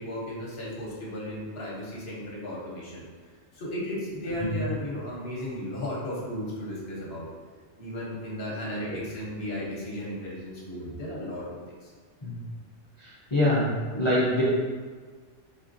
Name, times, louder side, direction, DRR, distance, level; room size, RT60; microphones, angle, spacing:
voice 1, 0.0-3.0 3.5-7.3 7.8-11.9, equal, 60° left, -5 dB, 1.2 m, -35 dB
voice 2, 8.6-9.0 12.2-12.3 13.0-14.4, left 1 dB, 30° left, -8 dB, 0.6 m, -26 dB
4.1 x 3.4 x 2.6 m, 1.5 s
omnidirectional pair, 1.2 m